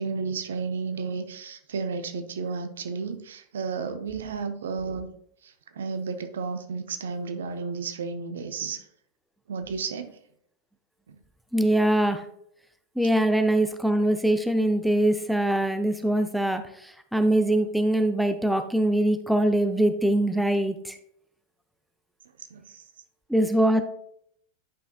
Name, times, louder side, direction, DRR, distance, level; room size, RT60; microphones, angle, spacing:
voice 1, 0.0-5.1 5.4-8.9 9.5-10.2 11.1-11.2 22.5-22.8, right 5 dB, 65° right, 8 dB, 0.7 m, -32 dB
voice 2, 11.5-12.2 13.0-21.0 23.3-23.8, right 1 dB, ahead, 8 dB, 0.5 m, -23 dB
10.5 x 5.6 x 2.3 m, 0.70 s
figure-of-eight pair, 90°, 0 cm